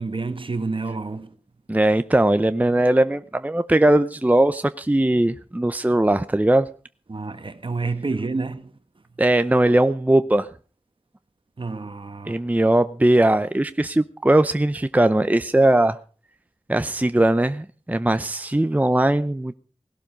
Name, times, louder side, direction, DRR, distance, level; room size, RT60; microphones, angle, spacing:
voice 1, 0.0-1.4 7.1-8.7 11.6-12.4, right 3 dB, 50° right, 1.5 m, -29 dB
voice 2, 1.7-6.7 9.2-10.5 12.3-16.0 16.7-19.5, right 1 dB, 15° right, 0.7 m, -19 dB
18.0 x 12.0 x 5.2 m
wide cardioid pair, 55°, 11 cm